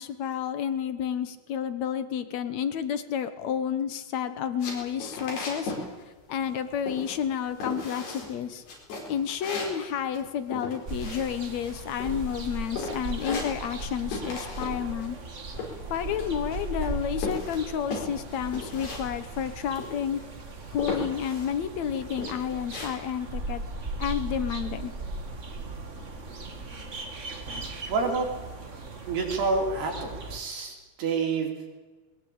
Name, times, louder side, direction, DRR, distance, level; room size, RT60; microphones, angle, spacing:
voice 1, 0.0-5.7 6.3-8.6 9.1-15.2 15.9-20.2 20.7-23.6 24.0-24.9, left 8 dB, 65° left, 11 dB, 1.9 m, -30 dB
sound 1, 4.6-5.9 6.1-6.6 6.9-7.3 7.6-8.3 8.7-11.7 12.0-12.5 12.8-13.9 14.1-14.8 15.0-16.5 16.8-19.0 19.3-19.4 19.8-20.3 20.8-21.5 21.9-22.9, left 3 dB, 80° left, 6.9 m, -36 dB
sound 2, 10.9-30.4, right 2 dB, 40° right, 1.0 m, -38 dB
voice 2, 27.9-28.3 29.1-31.5, right 4 dB, 85° right, 1 dB, 6.0 m, -28 dB
21.5 x 20.0 x 8.8 m, 1.3 s
omnidirectional pair, 4.5 m